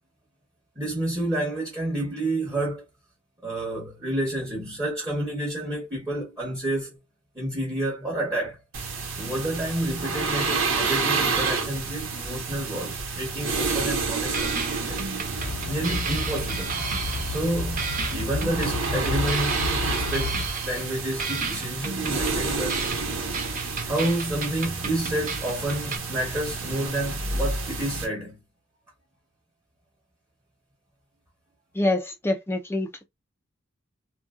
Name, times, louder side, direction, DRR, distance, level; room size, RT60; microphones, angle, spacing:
voice 1, 0.8-2.9 3.4-7.0 7.3-8.6 9.1-15.1 15.7-16.8 17.3-19.6 19.8-22.8 23.9-28.4, right 1 dB, 15° right, 1.0 m, -29 dB
sound 1, 8.7-28.1, right 4 dB, 80° right, 1.1 m, -30 dB
sound 2, 13.7-14.1 14.3-17.5 17.8-20.9 21.2-26.0, right 5 dB, 40° right, 0.6 m, -33 dB
sound 3, 15.4-20.5, left 3 dB, 85° left, 0.7 m, -31 dB
voice 2, 31.8-33.0, left 2 dB, 10° left, 0.4 m, -26 dB
2.8 x 2.6 x 2.3 m
head